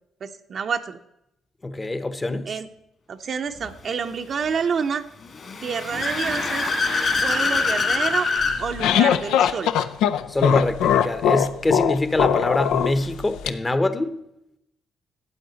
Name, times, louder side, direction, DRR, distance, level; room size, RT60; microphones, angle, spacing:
voice 1, 0.2-1.0 2.5-2.7 3.1-5.0 5.6-6.7 7.2-8.3 8.6-9.7, right 6 dB, 50° right, 0.7 m, -28 dB
voice 2, 1.6-2.5 10.3-14.2, left 2 dB, 20° left, 0.8 m, -24 dB
Car / Accelerating revving vroom, 5.3-8.6, left 3 dB, 50° left, 2.2 m, -24 dB
sound 1, 8.4-13.5, left 9 dB, 90° left, 0.5 m, -21 dB
12.5 x 8.7 x 4.0 m
cardioid pair, 90°, 0 cm